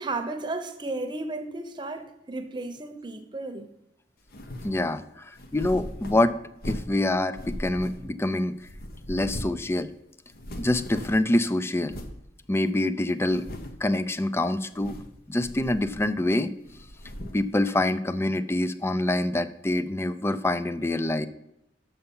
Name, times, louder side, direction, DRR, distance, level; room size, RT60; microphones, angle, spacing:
voice 1, 0.0-3.7, right 2 dB, 25° right, 6 dB, 0.8 m, -34 dB
sound 1, 4.3-4.8 5.4-7.0 7.3-8.3 8.6-9.7 9.9-10.0 10.3-11.3 11.9-12.2 12.7-12.8 13.2-13.9 14.6-15.2 15.4-16.3 16.7-17.5, equal, 55° left, 0.9 m, -39 dB
voice 2, 4.6-5.0 5.5-6.4 6.6-8.5 9.1-9.9 10.6-11.9 12.5-13.5 13.8-15.0 15.3-16.5 17.3-21.3, left 1 dB, 15° left, 13 dB, 0.4 m, -25 dB
6.7 x 5.6 x 7.0 m, 0.83 s
head